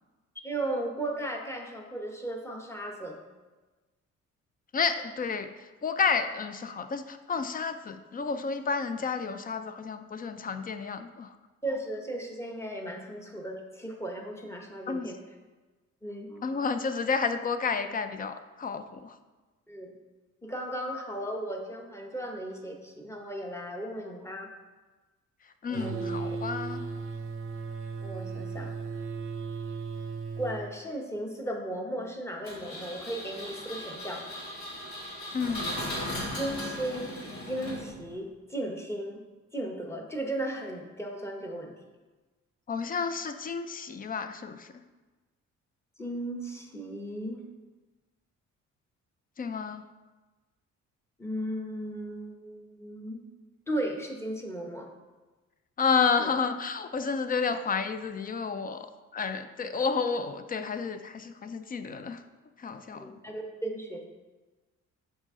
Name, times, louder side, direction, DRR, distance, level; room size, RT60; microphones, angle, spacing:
voice 1, 0.3-3.2 11.6-15.2 16.0-16.4 19.7-19.9 20.4-24.5 25.7-26.2 28.0-28.7 30.4-34.2 36.3-37.2 37.5-39.2 39.5-41.7 46.0-47.4 51.2-53.2 53.7-54.9 56.2-56.3 63.0-64.0, right 1 dB, 10° left, 1 dB, 0.9 m, -36 dB
voice 2, 4.7-5.5 5.8-11.3 14.9-15.1 16.4-19.1 25.6-26.8 35.3-35.7 42.7-44.7 49.4-49.8 55.8-58.9 59.1-62.2 62.6-63.1, left 5 dB, 30° left, 10 dB, 0.4 m, -30 dB
sound 1, 25.7-30.7, right 4 dB, 45° right, 0.6 m, -36 dB
Engine, 32.4-38.1, left 1 dB, 65° left, 1.9 m, -37 dB
6.2 x 4.1 x 3.7 m, 1.2 s
cardioid pair, 90°, 30 cm